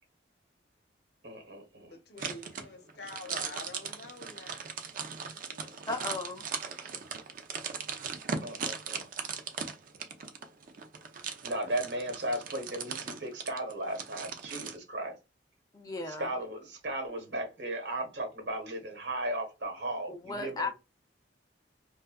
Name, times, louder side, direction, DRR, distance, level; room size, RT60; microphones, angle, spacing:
voice 1, 1.2-1.9 3.3-3.5 8.4-9.1 11.4-15.2 16.0-20.7, right 1 dB, 70° right, 1.1 m, -36 dB
voice 2, 1.9-4.6 4.9-5.8, left 3 dB, 60° left, 0.7 m, -47 dB
sound 1, 2.2-14.8, right 6 dB, 45° right, 0.4 m, -38 dB
voice 3, 5.9-6.4 15.7-16.3 20.1-20.7, left 3 dB, 20° left, 0.4 m, -35 dB
2.6 x 2.3 x 2.2 m
head